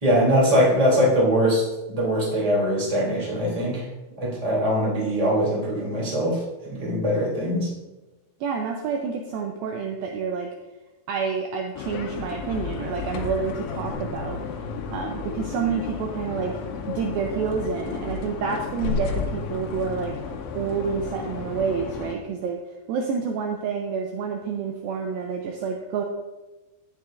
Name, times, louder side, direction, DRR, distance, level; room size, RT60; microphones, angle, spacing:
voice 1, 0.0-3.9 4.2-6.4 6.7-7.7, equal, 10° right, -4 dB, 2.1 m, -22 dB
voice 2, 8.4-10.5 11.1-14.4 14.9-16.6 16.9-20.2 20.5-22.6 22.9-26.0, right 6 dB, 80° right, 2 dB, 2.1 m, -28 dB
sound 1, 11.7-22.1, left 5 dB, 80° left, 2.8 m, -32 dB
11.5 x 10.5 x 2.5 m, 1.1 s
omnidirectional pair, 4.9 m